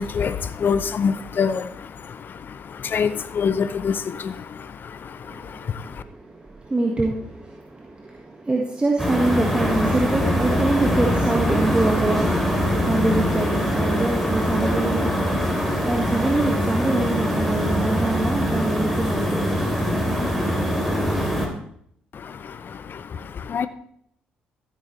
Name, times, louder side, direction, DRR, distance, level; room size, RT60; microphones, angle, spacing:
voice 1, 0.0-6.0 22.1-23.7, left 6 dB, 45° left, 12 dB, 0.6 m, -27 dB
voice 2, 5.2-19.7, right 2 dB, 25° right, 0 dB, 1.7 m, -25 dB
sound 1, 9.0-21.5, equal, ahead, 3.2 m, -23 dB
14.0 x 8.4 x 3.3 m, 0.66 s
hypercardioid pair, 45°, 5 cm